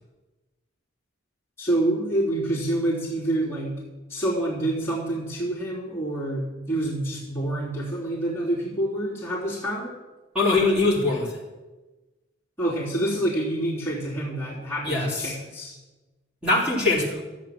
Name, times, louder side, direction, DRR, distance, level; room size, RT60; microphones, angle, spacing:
voice 1, 1.6-3.7 4.1-9.9 12.6-15.7, right 1 dB, 10° left, -8 dB, 3.5 m, -27 dB
voice 2, 10.3-11.4 14.8-15.3 16.4-17.2, left 2 dB, 5° right, -6 dB, 3.6 m, -22 dB
14.0 x 8.6 x 7.5 m, 1.2 s
head